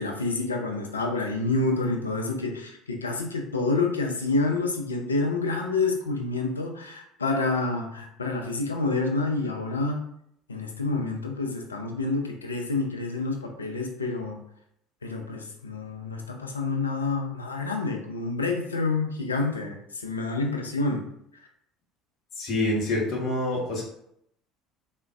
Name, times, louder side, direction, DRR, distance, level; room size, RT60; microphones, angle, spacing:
voice 1, 0.0-10.0 10.5-14.4 15.0-21.0, left 3 dB, 85° left, 3 dB, 0.4 m, -28 dB
voice 2, 22.4-23.8, left 1 dB, 50° left, -2 dB, 0.8 m, -26 dB
3.3 x 2.1 x 2.3 m, 0.74 s
figure-of-eight pair, 60°, 0 cm